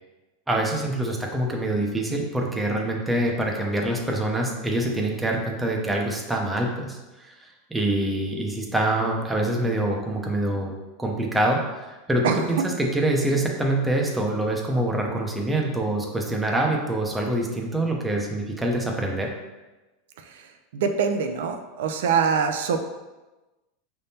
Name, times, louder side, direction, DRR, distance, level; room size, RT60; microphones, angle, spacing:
voice 1, 0.5-7.4 7.7-10.7 11.0-19.3, right 1 dB, 5° right, 0 dB, 0.6 m, -25 dB
voice 2, 20.7-22.8, right 6 dB, 85° right, 6 dB, 0.4 m, -23 dB
5.4 x 3.5 x 2.7 m, 1.1 s
supercardioid pair, 150°, 0 cm